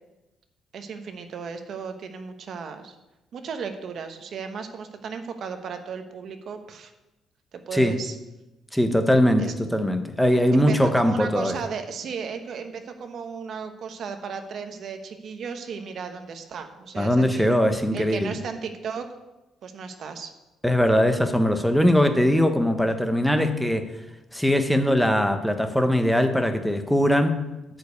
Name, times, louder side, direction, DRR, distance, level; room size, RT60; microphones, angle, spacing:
voice 1, 0.7-2.9 3.3-6.9 7.5-8.2 9.4-9.5 10.5-17.5 17.9-19.1 19.6-20.3, right 6 dB, 45° right, 7 dB, 1.0 m, -35 dB
voice 2, 8.7-11.5 17.0-18.3 20.6-23.9 24.3-27.5, equal, ahead, 7 dB, 0.8 m, -21 dB
11.0 x 5.3 x 8.2 m, 1.0 s
cardioid pair, 175°, 0 cm